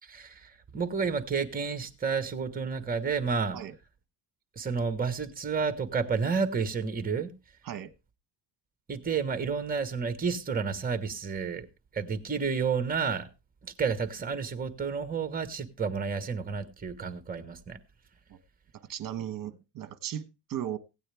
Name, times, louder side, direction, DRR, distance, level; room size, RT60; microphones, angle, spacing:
voice 1, 0.0-3.6 4.5-7.3 8.9-11.7 11.9-13.3 13.6-17.8, right 5 dB, 20° right, 1.4 m, -30 dB
voice 2, 18.9-20.8, right 10 dB, 50° right, 1.3 m, -36 dB
16.0 x 9.1 x 3.5 m
cardioid pair, 120°, 44 cm